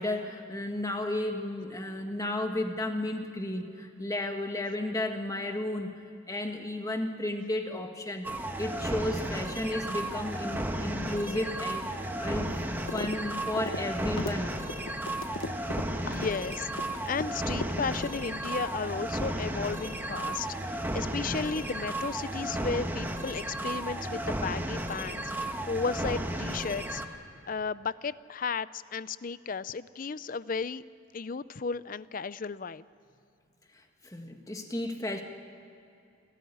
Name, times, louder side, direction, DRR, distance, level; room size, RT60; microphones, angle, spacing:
voice 1, 0.0-5.9 6.3-8.3 8.6-12.6 12.9-14.6 33.7-35.2, left 1 dB, 15° left, 4 dB, 1.6 m, -33 dB
sound 1, 8.2-27.1, right 1 dB, 10° right, 1.3 m, -34 dB
sound 2, 12.9-13.2 13.4-17.3 17.6-18.5, left 3 dB, 75° left, 1.0 m, -37 dB
voice 2, 16.0-27.0 27.5-30.8 31.1-32.8, left 5 dB, 40° left, 17 dB, 0.5 m, -34 dB
28.5 x 14.0 x 10.0 m, 2.6 s
head